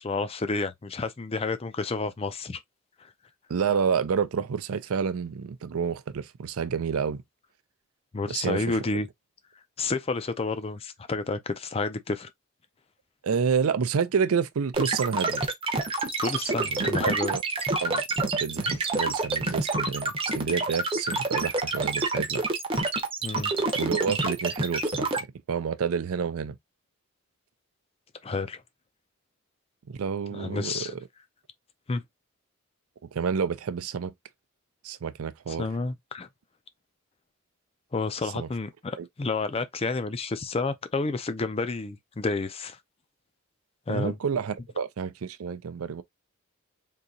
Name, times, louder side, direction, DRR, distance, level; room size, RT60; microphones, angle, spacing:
voice 1, 0.0-2.6 8.1-9.1 9.8-12.3 16.2-17.3 23.2-23.5 28.2-28.6 30.3-30.9 31.9-32.0 35.5-36.3 37.9-42.8 43.9-44.2, left 3 dB, 25° left, 0.4 m, -30 dB
voice 2, 3.5-7.2 8.3-8.8 13.2-15.4 16.7-17.4 17.8-22.4 23.7-26.6 29.9-30.8 33.1-34.1 34.8-35.7 38.3-38.5 39.0-39.1 43.9-46.0, right 6 dB, 80° right, 0.4 m, -29 dB
sound 1, 14.7-25.2, right 3 dB, 25° right, 0.7 m, -27 dB
3.8 x 2.8 x 2.7 m
head